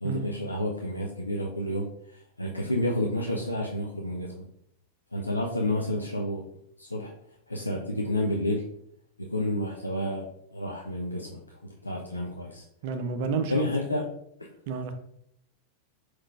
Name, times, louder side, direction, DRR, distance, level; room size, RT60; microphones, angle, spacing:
voice 1, 0.0-1.9 2.1-4.5 5.1-6.5 6.8-7.1 7.5-8.6 9.2-12.6 13.5-14.1 14.4-14.5, left 1 dB, 85° left, 0 dB, 0.4 m, -30 dB
voice 2, 12.8-13.6 14.7-14.9, right 5 dB, 50° right, 8 dB, 0.5 m, -30 dB
4.6 x 3.7 x 2.4 m, 0.70 s
figure-of-eight pair, 90°, 0 cm